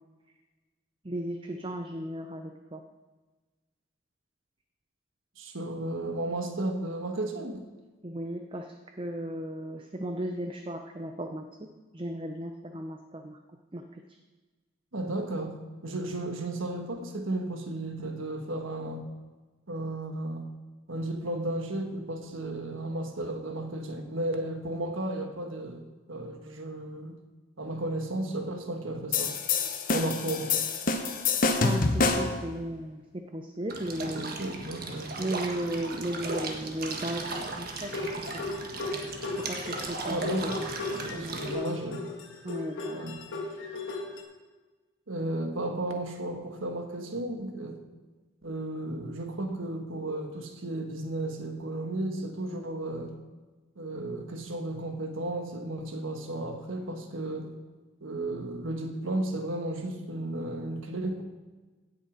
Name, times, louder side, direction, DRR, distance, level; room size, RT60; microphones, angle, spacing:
voice 1, 1.0-2.8 8.0-11.7 11.9-13.4 13.7-14.0 31.6-34.4 35.2-38.5 39.4-40.7 41.1-41.8 42.4-43.1, right 1 dB, 25° right, 5 dB, 0.6 m, -36 dB
voice 2, 5.4-7.7 14.9-15.6 15.8-19.0 19.7-20.5 20.9-25.8 26.1-27.2 27.6-29.4 29.9-30.6 34.0-35.3 40.1-40.6 40.9-42.0 42.9-43.2 45.1-47.8 48.4-53.1 53.8-57.5 58.0-61.2, right 1 dB, 80° right, 5 dB, 1.4 m, -34 dB
sound 1, 29.1-32.4, left 4 dB, 40° left, 0.9 m, -26 dB
sound 2, 33.7-41.5, right 3 dB, 45° right, 1.5 m, -37 dB
sound 3, 37.8-44.2, left 3 dB, 75° left, 1.7 m, -36 dB
16.5 x 6.6 x 5.1 m, 1.3 s
head